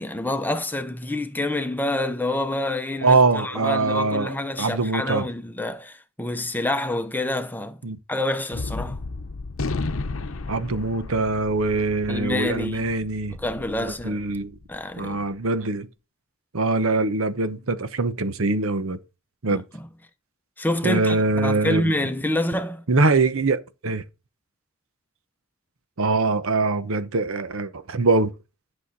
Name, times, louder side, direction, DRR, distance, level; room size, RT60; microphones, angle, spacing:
voice 1, 0.0-7.8 8.1-9.0 12.1-12.9 13.4-14.2 14.7-15.2 19.5-19.6 20.6-22.8, left 1 dB, 10° left, 0.8 m, -27 dB
voice 2, 3.0-5.3 7.8-8.0 10.5-13.4 13.8-14.5 15.0-15.9 16.5-19.0 19.4-19.6 20.8-21.9 22.9-24.0 26.0-28.3, right 3 dB, 75° right, 0.9 m, -23 dB
Gunshot gunfire, 8.5-15.1, left 3 dB, 75° left, 0.8 m, -33 dB
11.0 x 6.4 x 4.0 m
head